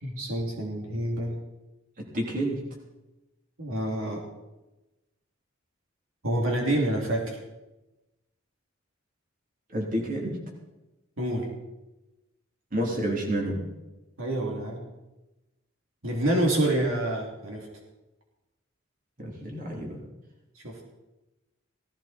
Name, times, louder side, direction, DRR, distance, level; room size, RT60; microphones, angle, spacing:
voice 1, 0.0-1.4 3.6-4.2 6.2-7.4 11.2-11.5 14.2-14.8 16.0-17.7 20.5-20.9, right 1 dB, 75° right, 0 dB, 3.2 m, -27 dB
voice 2, 2.0-2.7 9.7-10.4 12.7-13.6 19.2-20.0, right 1 dB, 40° right, -1 dB, 3.6 m, -29 dB
17.5 x 15.5 x 4.5 m, 1.0 s
head